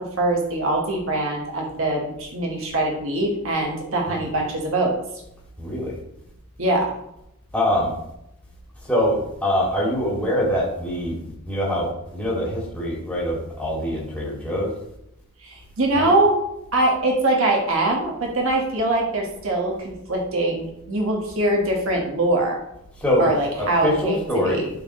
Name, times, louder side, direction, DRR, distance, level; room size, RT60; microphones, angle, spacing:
voice 1, 0.0-4.9 6.6-6.9 15.4-16.4 16.7-22.6 23.2-24.7, right 2 dB, 65° right, 0 dB, 1.6 m, -23 dB
voice 2, 5.6-5.9 7.5-7.9 8.9-11.2 11.5-14.7 16.0-16.1 23.0-23.3 23.6-24.6, equal, 5° left, -6 dB, 2.4 m, -24 dB
11.5 x 4.5 x 3.1 m, 0.81 s
head